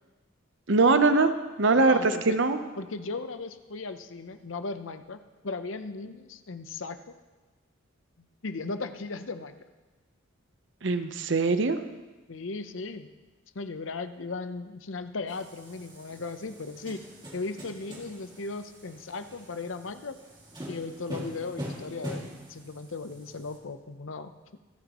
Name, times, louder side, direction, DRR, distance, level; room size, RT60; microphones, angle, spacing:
voice 1, 0.7-1.3 1.6-2.6 10.8-11.8, right 3 dB, 65° right, 9 dB, 0.8 m, -22 dB
voice 2, 1.8-2.4 2.8-7.1 8.2-9.6 12.3-13.1 13.5-17.0 17.3-20.2 20.7-24.3, left 3 dB, 75° left, 10 dB, 0.7 m, -37 dB
sound 1, 15.3-23.6, equal, 20° right, 2.3 m, -43 dB
26.5 x 9.4 x 3.0 m, 1.2 s
head